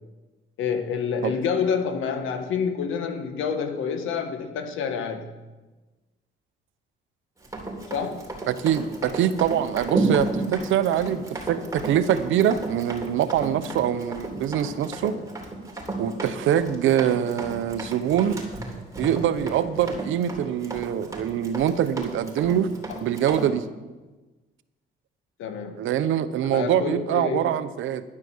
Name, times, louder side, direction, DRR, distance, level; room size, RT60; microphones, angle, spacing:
voice 1, 0.6-5.3 7.9-8.3 22.9-23.0 25.4-25.8 26.5-27.4, left 6 dB, 85° left, 7 dB, 1.5 m, -28 dB
Run, 7.4-23.5, right 2 dB, 15° right, 3.5 m, -33 dB
voice 2, 8.5-15.2 16.0-18.4 19.0-22.7 23.0-23.7 25.8-28.0, right 10 dB, 80° right, 12 dB, 0.8 m, -24 dB
11.0 x 9.8 x 7.2 m, 1.2 s
cardioid pair, 90°, 20 cm